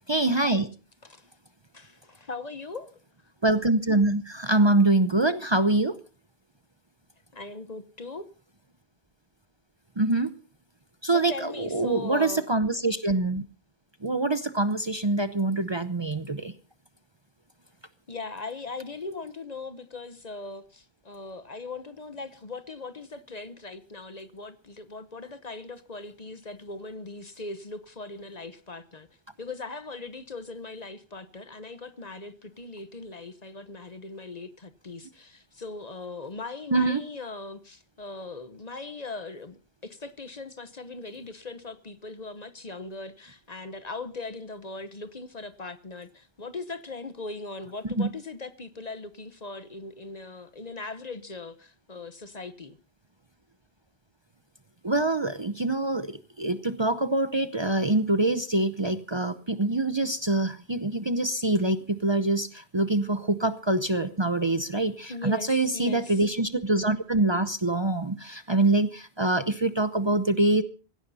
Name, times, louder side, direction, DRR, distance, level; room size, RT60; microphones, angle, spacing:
voice 1, 0.1-0.7 3.4-6.0 10.0-10.3 11.0-13.4 14.0-16.5 36.7-37.0 47.8-48.1 54.8-70.6, right 2 dB, 30° right, 0.8 m, -25 dB
voice 2, 1.7-3.0 7.3-8.3 11.0-12.5 18.1-29.1 29.4-52.8 65.1-66.2, left 3 dB, 40° left, 1.1 m, -39 dB
17.0 x 16.5 x 4.1 m
omnidirectional pair, 1.0 m